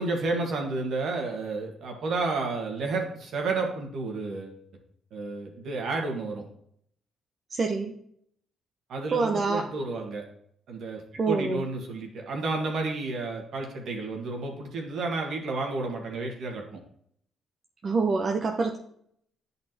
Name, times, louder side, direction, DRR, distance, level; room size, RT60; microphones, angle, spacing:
voice 1, 0.0-4.6 5.1-6.4 8.9-10.2 10.7-16.6, right 3 dB, 65° right, 1 dB, 1.6 m, -31 dB
voice 2, 7.5-8.0 9.1-9.7 11.2-11.6 17.8-18.8, right 4 dB, 45° right, 2 dB, 0.8 m, -26 dB
10.5 x 4.1 x 2.9 m, 0.68 s
hypercardioid pair, 50°, 0 cm